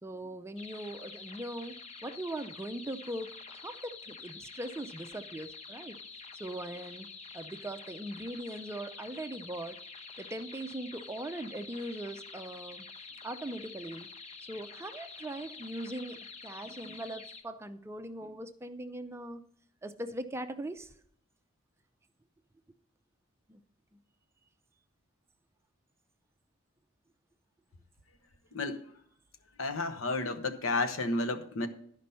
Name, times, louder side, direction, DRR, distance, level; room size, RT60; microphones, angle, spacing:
voice 1, 0.0-6.0 6.3-7.1 7.3-9.8 10.2-12.9 13.2-14.1 14.5-19.4 19.8-20.9 23.5-23.6, right 1 dB, 15° right, 9 dB, 0.4 m, -40 dB
sound 1, 0.6-17.4, left 4 dB, 30° left, 0.8 m, -48 dB
voice 2, 28.5-28.9 29.6-31.7, left 2 dB, 85° left, 8 dB, 1.0 m, -32 dB
11.5 x 5.2 x 5.5 m, 0.64 s
head